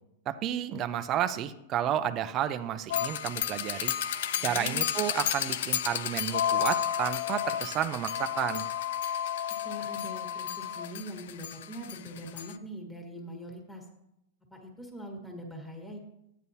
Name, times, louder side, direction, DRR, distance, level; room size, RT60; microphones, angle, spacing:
voice 1, 0.3-3.9 4.4-8.7, right 10 dB, 35° right, 10 dB, 0.6 m, -31 dB
sound 1, 2.9-12.5, left 10 dB, 70° left, 0.5 m, -31 dB
voice 2, 4.3-4.8 9.5-13.9 14.5-16.0, equal, 5° left, 2 dB, 1.6 m, -42 dB
12.5 x 9.2 x 2.8 m, 0.84 s
hypercardioid pair, 130°, 0 cm